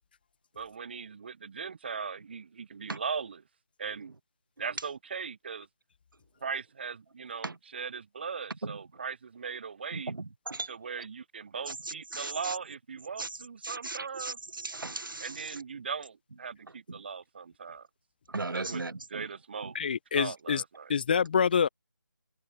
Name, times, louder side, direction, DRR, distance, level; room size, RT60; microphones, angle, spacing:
voice 1, 0.6-3.4 3.8-4.1 4.6-5.7 6.4-10.1 10.7-14.4 15.2-17.9 18.5-19.8 20.2-20.9, right 6 dB, 30° right, 0.5 m, -39 dB
voice 2, 9.9-10.7 11.7-12.6 13.2-13.4 13.6-15.6 16.9-17.0 18.3-19.3 19.6-19.7, right 3 dB, 75° right, 0.9 m, -37 dB
voice 3, 19.7-20.6 20.9-21.7, left 7 dB, 25° left, 0.6 m, -26 dB
figure-of-eight pair, 160°, 11 cm